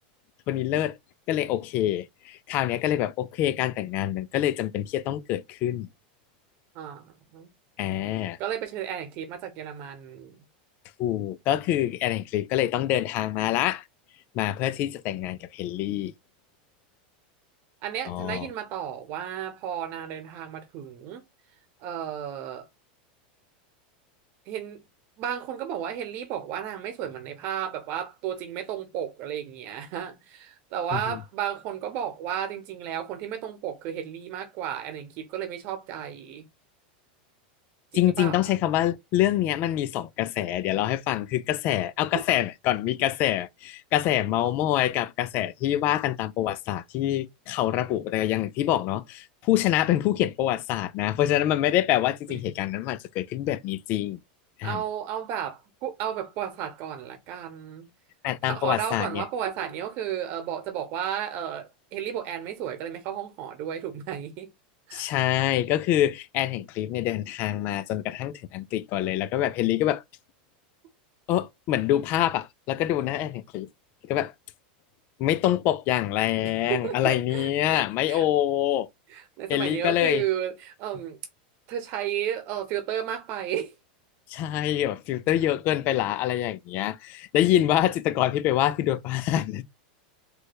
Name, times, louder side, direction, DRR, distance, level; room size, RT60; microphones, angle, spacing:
voice 1, 0.5-1.0 1.3-5.9 7.8-8.4 11.0-13.8 14.3-16.1 18.1-18.5 30.9-31.2 37.9-54.2 54.6-54.8 58.2-59.2 64.9-70.0 71.3-73.7 74.0-74.3 75.2-78.9 79.5-80.2 84.3-89.6, left 13 dB, 40° left, 0.4 m, -26 dB
voice 2, 6.7-7.5 8.4-10.4 17.8-21.2 21.8-22.7 24.5-24.8 25.2-36.4 37.9-38.5 52.3-52.4 54.6-57.9 58.4-64.5 64.9-65.1 76.4-78.2 79.1-81.2 81.7-83.7, right 10 dB, 45° right, 0.9 m, -33 dB
3.3 x 3.2 x 2.3 m
supercardioid pair, 150°, 5 cm